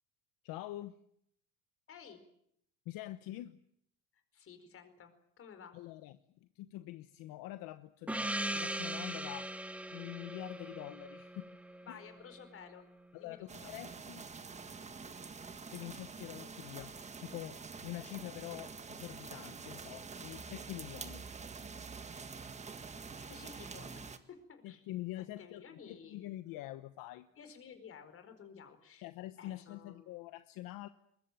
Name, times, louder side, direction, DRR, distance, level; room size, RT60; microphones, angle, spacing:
voice 1, 0.4-1.0 2.9-3.6 5.7-6.1 6.5-9.5 9.9-11.5 11.9-12.0 13.1-14.3 15.7-21.2 24.6-27.3 29.0-30.9, left 16 dB, 70° left, 11 dB, 1.1 m, -45 dB
voice 2, 1.9-2.2 4.3-5.8 11.9-12.9 13.2-13.7 23.1-24.9 25.2-26.3 27.3-29.1 29.4-30.1, left 7 dB, 40° left, 9 dB, 4.7 m, -54 dB
Gong, 8.1-12.4, right 1 dB, 5° right, 0.9 m, -40 dB
sound 1, 13.5-24.2, right 5 dB, 20° right, 1.7 m, -47 dB
22.0 x 21.5 x 9.2 m, 0.74 s
cardioid pair, 140°, 35 cm